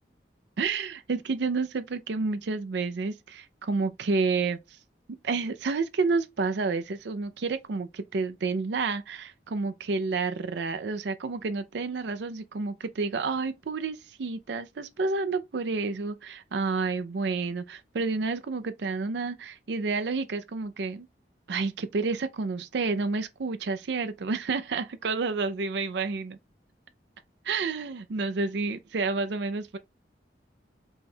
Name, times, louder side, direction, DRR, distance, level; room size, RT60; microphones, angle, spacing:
voice 1, 0.6-4.8 5.2-21.1 21.5-26.4 27.4-29.8, right 4 dB, 75° right, 0.5 m, -30 dB
5.4 x 2.2 x 4.2 m
head